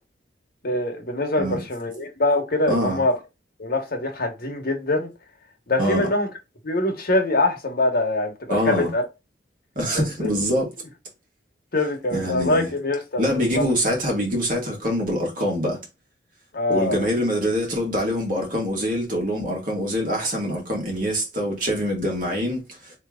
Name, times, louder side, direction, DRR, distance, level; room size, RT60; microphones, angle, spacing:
voice 1, 0.6-3.1 3.6-5.1 5.7-6.3 6.6-9.0 9.9-10.3 11.7-13.7 16.5-17.1, left 2 dB, 55° left, 1.1 m, -24 dB
voice 2, 2.7-3.0 5.8-6.1 8.5-8.9 9.7-10.7 12.1-12.7 13.2-15.8 16.7-22.9, equal, 50° right, 1.7 m, -24 dB
3.3 x 3.0 x 3.6 m
head